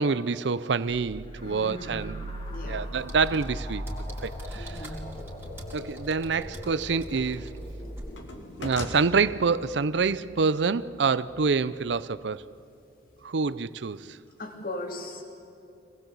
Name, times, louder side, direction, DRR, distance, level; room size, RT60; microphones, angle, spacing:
voice 1, 0.0-2.4 2.7-3.8 4.2-4.9 5.7-7.5 8.6-12.4 13.2-14.2, right 5 dB, 70° right, 0.6 m, -27 dB
sound 1, 0.8-12.2, equal, 30° left, 2.9 m, -40 dB
voice 2, 1.4-2.0 2.5-2.8 4.5-4.9 14.4-15.2, left 1 dB, 50° left, 3.2 m, -38 dB
sound 2, 3.0-8.2, equal, 15° right, 3.5 m, -43 dB
sound 3, 6.5-7.5 7.8-9.0, left 2 dB, 85° left, 2.8 m, -40 dB
25.0 x 19.5 x 8.2 m
head